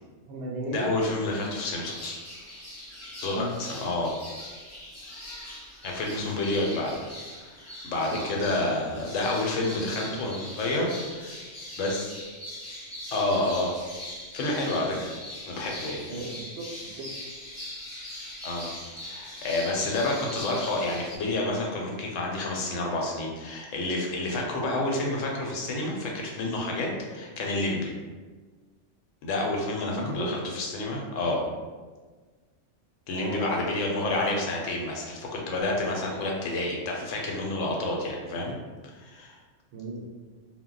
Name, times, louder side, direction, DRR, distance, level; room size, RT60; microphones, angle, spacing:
voice 1, 0.2-0.9 3.3-3.5 8.0-8.6 9.1-9.4 9.7-10.2 16.1-16.7 17.0-17.1 29.9-30.4 33.1-33.5 34.0-34.4 39.7-40.1, right 2 dB, 65° right, -3 dB, 0.8 m, -36 dB
voice 2, 0.7-2.2 3.2-4.1 5.8-7.0 7.3-11.4 11.7-12.1 13.1-13.8 14.3-15.1 15.5-16.1 18.4-18.7 19.0-27.9 29.2-31.4 33.1-38.6 38.9-39.4, left 2 dB, 80° left, -1 dB, 1.0 m, -29 dB
sound 1, 1.2-21.2, left 1 dB, 20° left, 0.5 m, -41 dB
2.2 x 2.1 x 3.7 m, 1.4 s
omnidirectional pair, 1.3 m